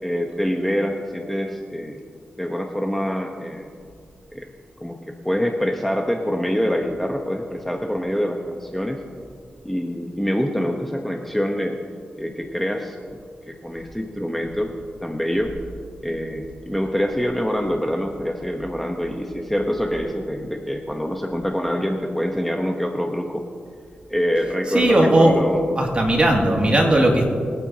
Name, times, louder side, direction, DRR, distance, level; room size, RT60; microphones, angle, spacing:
voice 1, 0.0-2.0 2.4-3.7 4.3-4.5 4.8-9.0 9.6-11.8 12.2-13.2 13.5-14.7 15.0-15.5 16.0-23.4 24.1-25.6, equal, 5° left, 2 dB, 1.0 m, -25 dB
voice 2, 24.7-25.4 25.8-27.3, right 1 dB, 35° right, -1 dB, 2.4 m, -17 dB
23.5 x 9.0 x 2.9 m, 2.2 s
cardioid pair, 75°, 3 cm